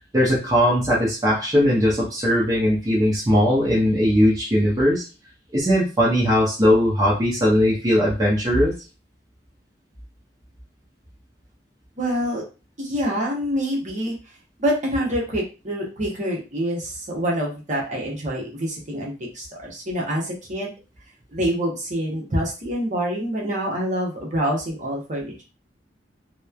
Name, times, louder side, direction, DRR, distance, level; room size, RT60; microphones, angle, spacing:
voice 1, 0.1-5.1 5.5-8.7, equal, 20° right, -5 dB, 0.6 m, -19 dB
voice 2, 12.0-12.4 12.8-14.2 14.6-20.7 21.3-25.4, equal, 45° right, -2 dB, 0.9 m, -26 dB
3.0 x 2.1 x 2.3 m, 0.31 s
head